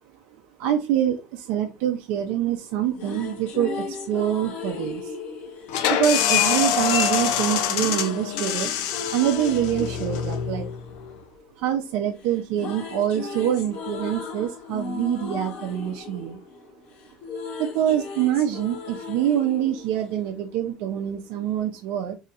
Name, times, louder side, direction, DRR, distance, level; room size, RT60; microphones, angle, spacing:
voice 1, 0.6-5.1 5.9-8.7 9.1-10.7 11.6-16.4 17.6-22.2, right 10 dB, 75° right, 3 dB, 0.5 m, -25 dB
sound 1, 2.7-6.9 7.7-11.9 12.2-20.7, left 4 dB, 60° left, 1.1 m, -36 dB
sound 2, 5.7-11.1, left 8 dB, 80° left, 0.5 m, -25 dB
2.8 x 2.5 x 4.2 m, 0.28 s
cardioid pair, 140°, 2 cm